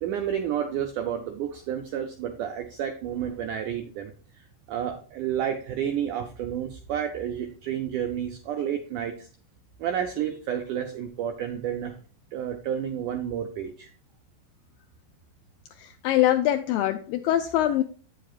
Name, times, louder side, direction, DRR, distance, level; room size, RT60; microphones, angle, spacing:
voice 1, 0.0-9.3 9.8-12.0 12.3-13.9, right 9 dB, 90° right, 5 dB, 1.7 m, -30 dB
voice 2, 15.8-17.8, left 13 dB, 85° left, 7 dB, 2.0 m, -23 dB
8.5 x 7.6 x 2.4 m, 0.41 s
omnidirectional pair, 4.5 m